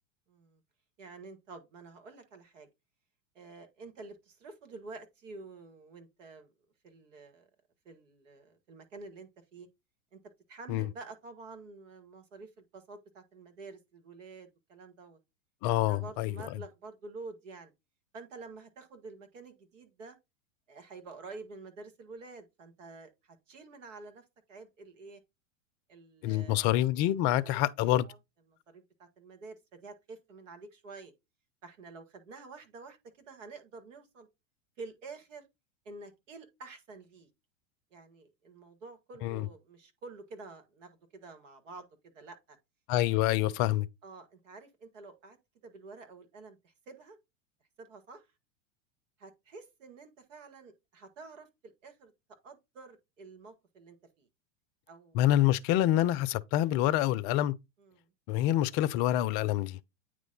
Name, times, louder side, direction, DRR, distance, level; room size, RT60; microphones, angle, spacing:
voice 1, 0.3-0.6 1.0-2.7 3.4-6.5 6.8-7.5 7.9-9.7 10.1-10.2 10.5-15.2 15.9-17.7 18.1-20.2 20.7-25.2 25.9-26.7 27.0-27.6 28.0-28.2 28.7-31.1 31.6-33.0 33.3-34.3 34.8-35.5 35.9-37.3 37.9-41.9 42.1-42.6 44.0-45.4 45.6-47.2 47.8-48.3 49.2-52.1 52.4-54.3 54.9-55.2 57.8-58.1, right 3 dB, 70° right, 1.8 m, -49 dB
voice 2, 15.6-16.6 26.2-28.1 39.2-39.5 42.9-43.9 55.1-57.6 58.3-59.8, left 13 dB, 45° left, 0.5 m, -27 dB
9.1 x 3.1 x 3.9 m
hypercardioid pair, 95°, 39 cm